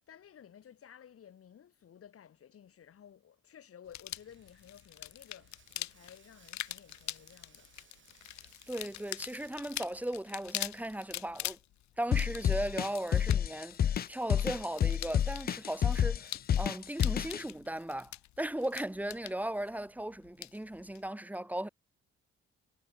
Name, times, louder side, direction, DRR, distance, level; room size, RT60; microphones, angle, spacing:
voice 1, 0.0-7.7, left 9 dB, 50° left, 2.4 m, -55 dB
sound 1, 3.9-21.1, left 14 dB, 70° left, 0.9 m, -44 dB
Bathtub (filling or washing), 4.1-9.5, right 7 dB, 40° right, 3.3 m, -64 dB
voice 2, 8.7-11.6 12.0-21.7, right 1 dB, 5° right, 1.8 m, -37 dB
sound 2, 12.1-17.4, left 9 dB, 35° left, 0.4 m, -29 dB
cardioid pair, 120°, 29 cm